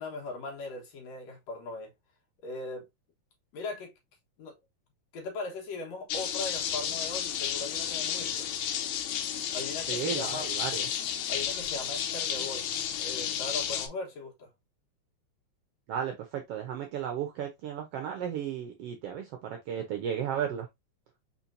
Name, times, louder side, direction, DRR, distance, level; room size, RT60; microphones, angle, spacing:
voice 1, 0.0-1.9 2.4-2.9 3.5-3.9 4.4-4.6 5.1-8.5 9.5-10.5 11.3-12.7 13.0-14.5, left 3 dB, 65° left, 2.3 m, -39 dB
sound 1, 6.1-13.9, left 9 dB, 85° left, 2.2 m, -32 dB
voice 2, 9.9-10.9 15.9-20.7, right 9 dB, 75° right, 1.4 m, -34 dB
4.4 x 4.3 x 2.6 m
omnidirectional pair, 3.4 m